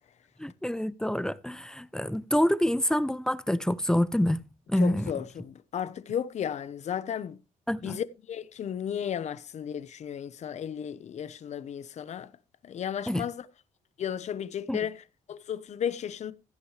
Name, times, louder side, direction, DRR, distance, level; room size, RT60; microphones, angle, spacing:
voice 1, 0.4-5.1 7.7-8.0 13.1-13.2 14.7-14.8, left 1 dB, 5° left, 0.6 m, -27 dB
voice 2, 4.8-7.4 7.8-12.3 12.6-13.5 14.0-16.3, left 9 dB, 55° left, 1.0 m, -34 dB
15.0 x 9.6 x 3.3 m
cardioid pair, 125°, 14 cm